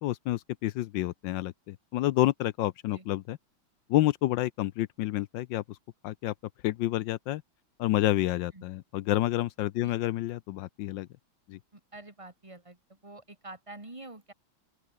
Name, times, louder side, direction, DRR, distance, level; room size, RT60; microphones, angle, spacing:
voice 1, 0.0-3.4 3.9-5.6 6.0-6.3 6.6-7.4 7.8-11.1 11.5-11.6, left 15 dB, 75° left, 1.2 m, -29 dB
voice 2, 11.7-12.8 13.0-14.3, right 2 dB, 15° right, 2.5 m, -46 dB
open air
omnidirectional pair, 2.2 m